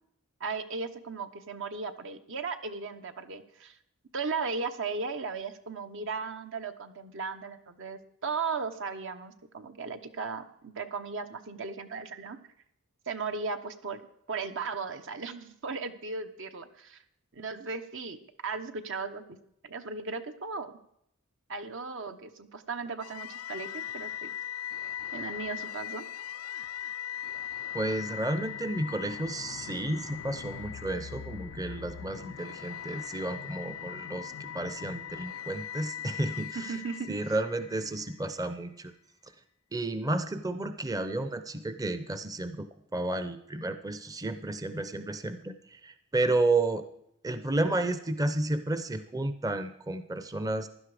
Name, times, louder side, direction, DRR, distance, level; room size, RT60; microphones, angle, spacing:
voice 1, 0.4-3.8 4.1-12.4 13.1-14.0 14.3-17.0 17.3-19.2 19.6-20.7 21.5-24.3 25.1-26.0 36.5-37.2, right 4 dB, 60° right, 8 dB, 1.1 m, -36 dB
sound 1, 23.0-38.1, left 10 dB, 90° left, 0.4 m, -40 dB
voice 2, 27.7-36.7 37.1-38.9 39.7-46.8 47.2-50.7, right 2 dB, 15° right, 10 dB, 0.7 m, -32 dB
16.0 x 11.5 x 5.0 m, 0.74 s
head